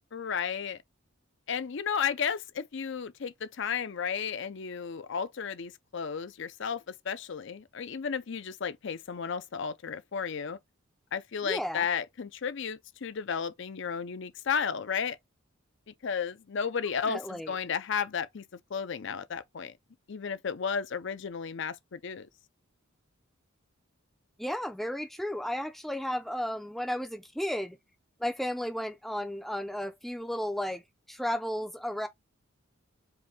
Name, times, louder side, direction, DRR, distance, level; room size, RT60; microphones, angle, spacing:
voice 1, 0.1-0.8 1.5-10.6 11.1-15.2 15.9-18.4 18.7-19.7 20.1-22.3, left 6 dB, 60° left, 0.5 m, -33 dB
voice 2, 11.4-11.9 17.1-17.5 24.4-27.8 28.2-30.8 31.1-32.1, equal, ahead, 0.5 m, -33 dB
4.9 x 2.6 x 3.4 m
head